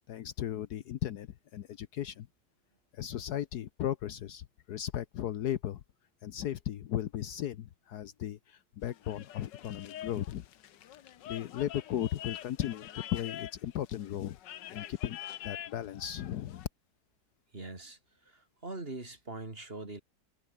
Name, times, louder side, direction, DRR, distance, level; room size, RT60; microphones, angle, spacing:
voice 1, 0.1-1.3 1.5-2.3 2.9-5.8 6.2-10.4 11.3-14.4 14.7-16.7, left 11 dB, 70° left, 1.3 m, -36 dB
sound 1, 8.8-16.7, left 11 dB, 85° left, 1.6 m, -46 dB
voice 2, 17.5-18.0 18.2-20.0, right 2 dB, 35° right, 3.2 m, -42 dB
omnidirectional pair, 1.9 m